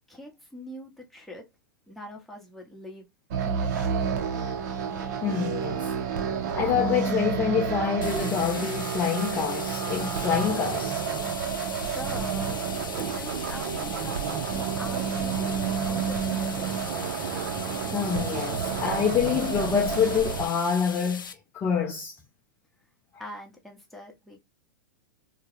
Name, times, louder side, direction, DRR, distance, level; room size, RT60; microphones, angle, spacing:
voice 1, 0.1-1.4 1.9-3.1 3.4-4.2 11.8-12.6 13.0-14.2 14.5-16.7 23.2-24.4, left 1 dB, ahead, 0.8 m, -43 dB
sound 1, 3.3-20.5, right 7 dB, 55° right, 0.6 m, -30 dB
voice 2, 5.2-5.9 6.6-11.0 17.8-22.1, left 7 dB, 20° left, 0.4 m, -26 dB
sound 2, 8.0-21.3, left 6 dB, 90° left, 0.4 m, -40 dB
2.2 x 2.0 x 3.0 m
hypercardioid pair, 110°, 11 cm